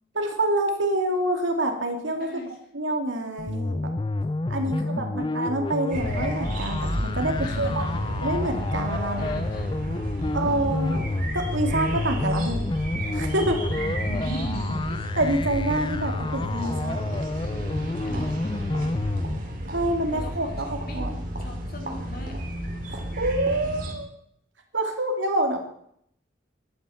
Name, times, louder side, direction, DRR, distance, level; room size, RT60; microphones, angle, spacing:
voice 1, 0.1-2.3 2.7-3.9 4.5-7.8 8.2-9.4 10.3-11.0 11.3-12.7 13.1-13.6 15.2-17.1 19.7-21.1 22.9-24.1 24.7-25.6, right 1 dB, 85° right, 3 dB, 2.6 m, -27 dB
voice 2, 2.2-2.6 4.6-5.3 7.4-8.0 9.1-9.8 10.2-11.0 13.7-15.0 18.0-19.5 20.1-22.4, right 1 dB, 50° left, 3 dB, 2.7 m, -40 dB
sound 1, 3.4-19.4, left 2 dB, 25° left, 0.4 m, -29 dB
sound 2, 5.9-23.9, equal, 45° right, 2.8 m, -32 dB
11.5 x 9.2 x 7.9 m, 0.69 s
head